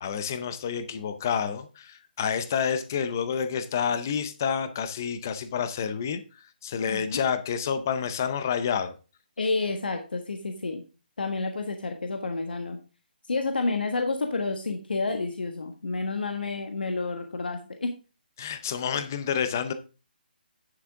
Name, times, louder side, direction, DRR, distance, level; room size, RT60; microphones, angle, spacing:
voice 1, 0.0-8.9 18.4-19.7, left 7 dB, 20° left, 11 dB, 0.5 m, -29 dB
voice 2, 6.9-7.2 9.4-10.8 11.2-12.8 13.3-17.9, left 3 dB, 75° left, 5 dB, 1.4 m, -30 dB
9.6 x 7.3 x 3.6 m, 0.33 s
hypercardioid pair, 180°, 5 cm